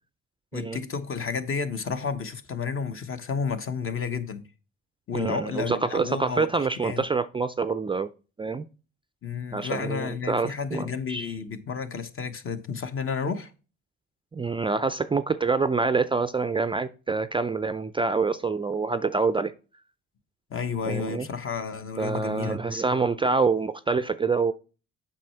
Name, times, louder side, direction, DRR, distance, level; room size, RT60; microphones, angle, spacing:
voice 1, 0.5-4.4 5.1-7.0 9.2-13.5 20.5-22.8, left 5 dB, 45° left, 1.0 m, -31 dB
voice 2, 5.1-8.1 8.4-8.6 9.5-11.3 14.3-19.5 20.9-21.3 22.0-24.5, right 4 dB, 20° right, 0.3 m, -26 dB
7.6 x 5.7 x 4.3 m
cardioid pair, 90°, 29 cm